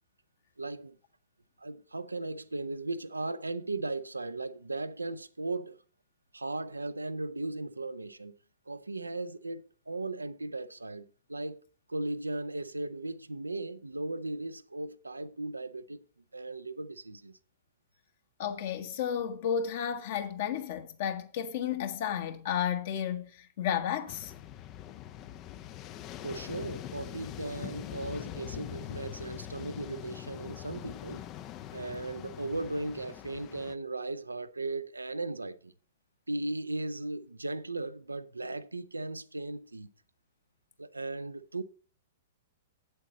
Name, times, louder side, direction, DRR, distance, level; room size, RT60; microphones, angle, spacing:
voice 1, 0.6-1.0 1.6-5.8 6.3-8.4 8.7-11.6 11.9-16.0 16.3-17.4 26.2-31.2 31.7-35.7 36.3-39.9 40.8-41.6, right 2 dB, 80° right, 0.5 m, -37 dB
voice 2, 18.4-24.3, left 8 dB, 50° left, 1.3 m, -32 dB
sound 1, 24.1-33.7, left 12 dB, 30° left, 0.5 m, -43 dB
8.1 x 7.8 x 4.1 m
figure-of-eight pair, 105°, 0 cm